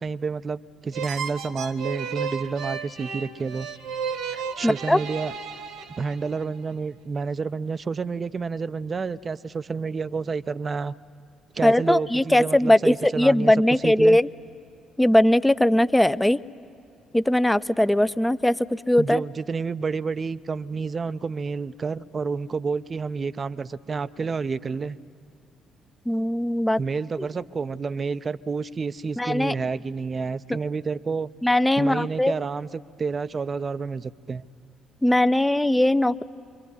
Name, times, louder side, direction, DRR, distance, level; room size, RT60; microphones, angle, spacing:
voice 1, 0.0-3.7 4.6-5.3 6.0-10.9 11.5-13.5 13.8-14.2 19.0-25.0 26.8-31.3 31.8-34.5, right 5 dB, 35° right, 15 dB, 0.6 m, -29 dB
sound 1, 0.9-6.4, right 6 dB, 60° right, 1.5 m, -33 dB
voice 2, 4.6-5.0 11.6-14.3 15.0-16.4 17.1-19.2 26.1-26.8 29.2-29.5 31.4-32.3 35.0-36.2, left 1 dB, 10° left, 14 dB, 0.7 m, -20 dB
25.5 x 23.5 x 9.7 m, 2.5 s
figure-of-eight pair, 45°, 0 cm